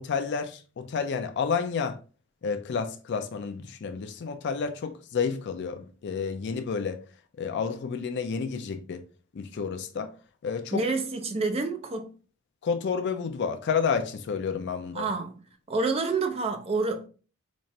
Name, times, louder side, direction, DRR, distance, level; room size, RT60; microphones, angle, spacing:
voice 1, 0.0-2.0 2.4-7.0 7.4-9.0 9.3-10.1 10.4-10.8 12.6-15.1, left 6 dB, 50° left, 0.4 m, -30 dB
voice 2, 10.7-12.2 14.9-15.4 15.7-17.1, right 3 dB, 25° right, 0.5 m, -28 dB
4.1 x 2.4 x 3.2 m
head